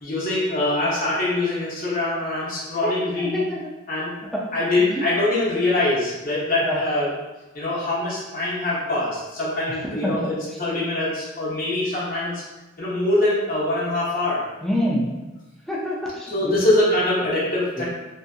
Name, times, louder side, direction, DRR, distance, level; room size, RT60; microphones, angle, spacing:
voice 1, 0.0-3.5 3.9-4.1 4.5-7.1 7.5-12.4 12.8-14.4 16.3-17.8, left 2 dB, 45° left, -8 dB, 0.8 m, -23 dB
voice 2, 2.8-3.6 4.3-4.4 4.9-5.0 6.6-6.8 9.9-10.1 14.6-15.2 15.7-16.6 17.2-17.3 17.8-17.9, equal, ahead, -5 dB, 0.4 m, -27 dB
2.7 x 2.5 x 2.3 m, 1.1 s
head